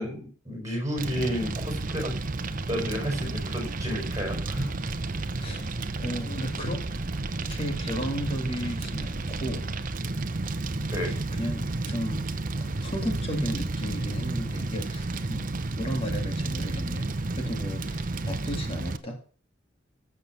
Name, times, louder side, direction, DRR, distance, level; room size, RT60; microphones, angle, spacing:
voice 1, 0.0-2.2 2.7-4.8 10.7-11.2, equal, 15° right, 2 dB, 5.4 m, -32 dB
Fire, 1.0-19.0, right 2 dB, 45° right, 0.8 m, -31 dB
voice 2, 5.4-6.8 7.5-9.7 11.0-12.2 12.6-15.5 15.8-17.1 17.4-19.2, equal, 30° left, 3 dB, 2.1 m, -34 dB
15.0 x 7.0 x 5.9 m, 0.40 s
head